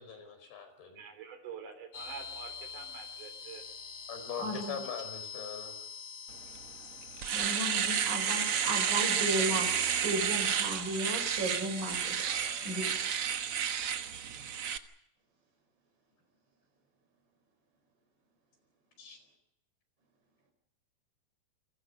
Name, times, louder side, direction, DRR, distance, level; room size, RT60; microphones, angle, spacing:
voice 1, 0.0-1.0 4.1-5.7 19.0-19.2, left 6 dB, 70° left, 8 dB, 6.6 m, -42 dB
voice 2, 0.9-3.6 12.2-12.9, right 6 dB, 55° right, 4 dB, 5.1 m, -47 dB
sound 1, 1.9-12.9, left 6 dB, 45° left, 5.3 m, -46 dB
voice 3, 4.4-4.8 7.3-12.3 12.6-13.0, right 1 dB, 25° right, 4 dB, 6.1 m, -35 dB
Domestic sounds home sounds, 6.5-6.6 7.0-14.8, right 8 dB, 90° right, 1.2 m, -31 dB
29.0 x 23.5 x 5.4 m, 0.79 s
omnidirectional pair, 4.7 m